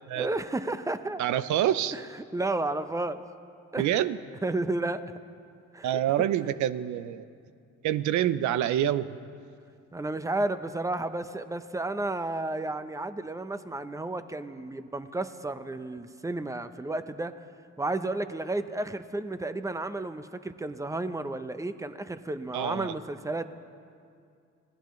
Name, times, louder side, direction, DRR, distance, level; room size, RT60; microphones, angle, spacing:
voice 1, 0.2-1.2 1.9-2.0 2.3-3.2 3.7-3.9 4.4-5.0 5.7-6.0 9.9-17.3 17.8-23.4, right 2 dB, 10° right, 11 dB, 0.8 m, -32 dB
voice 2, 1.2-1.9 3.8-4.2 5.8-7.2 7.8-9.2 22.5-22.9, right 11 dB, 80° right, 14 dB, 0.6 m, -26 dB
26.0 x 16.5 x 3.2 m, 2.3 s
cardioid pair, 80°, 29 cm